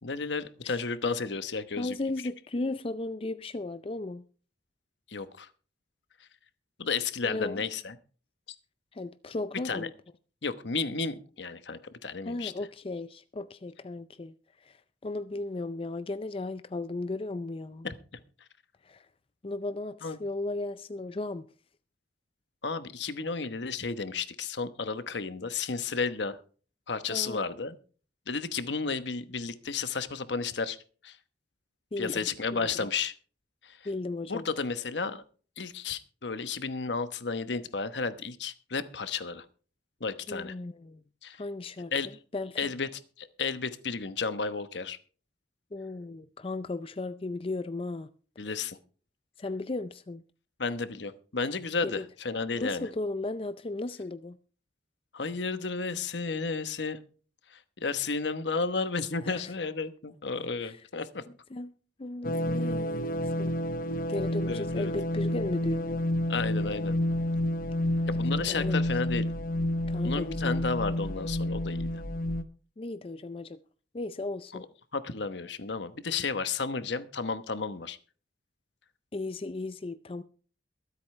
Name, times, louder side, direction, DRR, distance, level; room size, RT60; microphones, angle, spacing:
voice 1, 0.0-2.0 5.1-5.5 6.2-6.3 6.8-8.0 8.5-8.6 9.6-9.9 10.4-12.5 17.8-17.9 20.0-20.2 22.6-26.4 26.9-27.7 28.3-30.8 31.0-31.2 32.0-33.1 33.6-33.9 34.3-35.2 35.6-39.4 40.0-40.5 41.2-41.4 41.9-42.1 42.6-45.0 48.4-48.8 50.6-52.9 55.1-57.0 57.5-61.2 64.5-64.9 66.3-67.0 68.0-69.3 70.0-72.0 74.9-78.0, left 4 dB, 70° left, 1.1 m, -32 dB
voice 2, 1.8-4.2 7.2-7.6 8.9-9.9 12.2-17.9 18.8-19.1 19.4-21.5 27.1-27.4 31.9-32.7 33.8-34.5 40.3-41.0 41.4-41.9 42.3-42.6 45.7-48.1 49.4-50.2 51.8-52.1 52.6-54.4 59.2-59.5 60.6-60.8 61.5-61.7 62.0-63.6 64.1-66.0 68.5-68.8 69.9-70.7 72.8-73.6 73.9-74.6 79.1-80.2, left 2 dB, 30° left, 0.5 m, -35 dB
sound 1, 62.2-72.4, left 1 dB, 50° left, 0.9 m, -30 dB
23.0 x 8.3 x 3.3 m
head